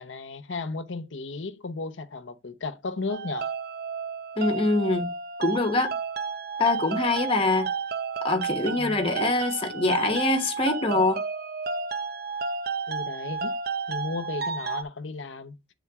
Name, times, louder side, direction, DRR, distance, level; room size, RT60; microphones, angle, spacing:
voice 1, 0.0-3.5 8.8-9.0 12.9-13.6 13.9-15.5, left 3 dB, 80° left, 0.8 m, -34 dB
sound 1, 3.1-14.8, right 5 dB, 50° right, 0.6 m, -32 dB
voice 2, 4.4-5.1 5.4-5.9 6.6-7.7 8.2-11.2, left 2 dB, 30° left, 1.2 m, -24 dB
8.5 x 3.8 x 3.6 m
head